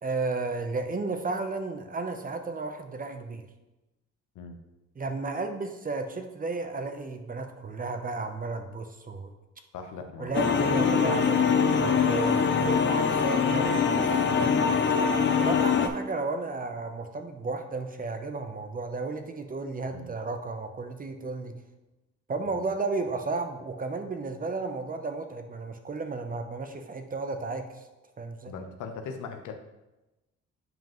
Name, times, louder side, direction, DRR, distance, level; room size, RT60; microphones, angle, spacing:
voice 1, 0.0-3.5 5.0-9.3 10.2-14.7 15.4-21.5 22.3-27.8 28.2-28.5, right 3 dB, 30° right, 6 dB, 0.7 m, -33 dB
voice 2, 9.7-10.4 14.3-14.9 19.9-20.1 22.5-22.6 28.5-29.5, left 5 dB, 80° left, 5 dB, 0.8 m, -40 dB
sound 1, 10.3-15.9, left 6 dB, 40° left, 0.6 m, -23 dB
7.7 x 5.1 x 3.0 m, 1.0 s
cardioid pair, 90°, 30 cm